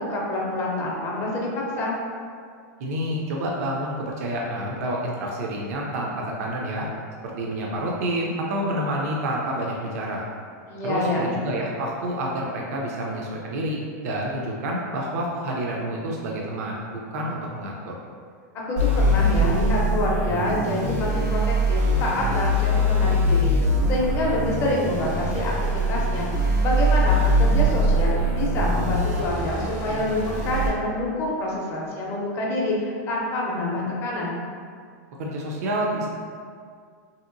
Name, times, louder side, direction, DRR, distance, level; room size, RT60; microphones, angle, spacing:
voice 1, 0.0-1.5 1.8-1.9 10.7-11.3 18.7-26.3 26.6-34.4, left 1 dB, 25° left, -3 dB, 0.5 m, -27 dB
voice 2, 2.8-6.9 7.4-10.3 10.8-17.9 35.2-36.1, right 1 dB, 65° right, -2 dB, 0.4 m, -28 dB
sound 1, 18.8-30.7, equal, 90° right, 1.2 m, -22 dB
2.9 x 2.7 x 2.5 m, 2.1 s
supercardioid pair, 160°, 9 cm